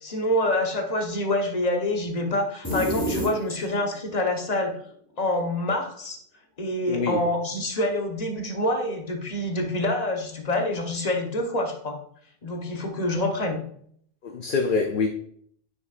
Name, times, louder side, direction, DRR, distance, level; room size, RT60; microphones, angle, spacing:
voice 1, 0.0-4.8 5.2-6.2 6.6-12.0 12.4-13.6, left 1 dB, 40° left, 1.1 m, -26 dB
sound 1, 2.6-3.9, equal, 15° left, 2.7 m, -28 dB
voice 2, 6.9-7.2 14.2-15.1, left 4 dB, 60° left, 0.8 m, -25 dB
9.5 x 6.1 x 2.5 m
omnidirectional pair, 1.0 m